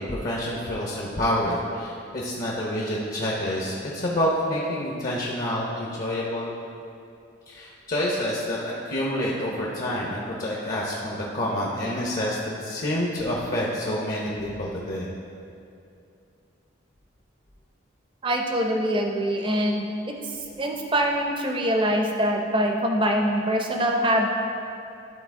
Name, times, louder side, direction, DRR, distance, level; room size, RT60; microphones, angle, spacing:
voice 1, 0.0-6.5 7.5-15.1, left 1 dB, 45° left, -4 dB, 0.7 m, -28 dB
voice 2, 18.2-20.1 20.6-24.3, equal, 25° right, 2 dB, 0.6 m, -24 dB
11.5 x 3.9 x 3.6 m, 2.6 s
head